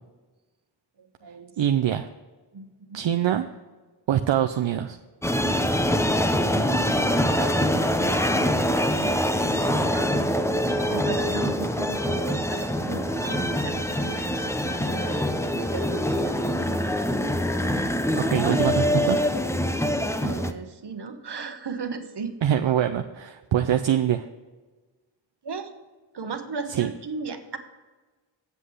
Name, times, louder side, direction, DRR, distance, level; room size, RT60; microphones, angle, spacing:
voice 1, 1.0-1.6 2.5-3.0 6.5-10.4 10.9-16.4 20.2-22.4 25.4-25.7 26.1-27.6, right 5 dB, 60° right, 7 dB, 1.1 m, -36 dB
voice 2, 1.6-2.1 2.9-3.5 4.1-5.0 18.1-19.2 22.4-24.3 26.8-26.9, right 10 dB, 75° right, 6 dB, 0.6 m, -24 dB
sound 1, 5.2-20.5, equal, 5° left, 0.5 m, -24 dB
8.3 x 7.6 x 4.9 m, 1.3 s
wide cardioid pair, 85°, 45 cm